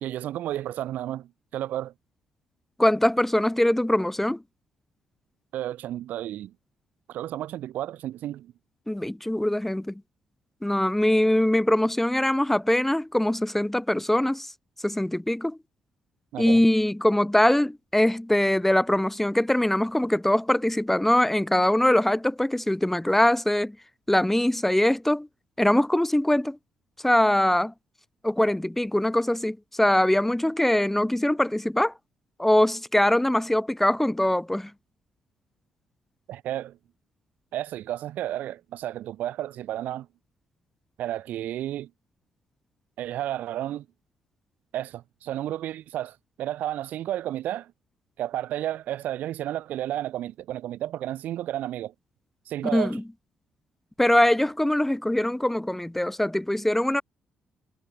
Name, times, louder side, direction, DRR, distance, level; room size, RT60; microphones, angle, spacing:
voice 1, 0.0-1.9 5.5-6.5 7.1-8.5 16.3-16.6 36.3-36.8 37.5-40.1 41.0-41.9 43.0-43.9 44.7-47.7 48.2-51.9 52.5-53.0, right 12 dB, 70° right, 0.5 m, -32 dB
voice 2, 2.8-4.4 8.9-9.9 10.6-14.5 14.8-15.6 16.4-23.7 24.1-25.3 25.6-26.6 27.0-27.7 28.2-31.9 32.4-34.7 52.7-53.0 54.0-57.0, left 1 dB, 10° left, 1.4 m, -22 dB
hypercardioid pair, 50°, 3 cm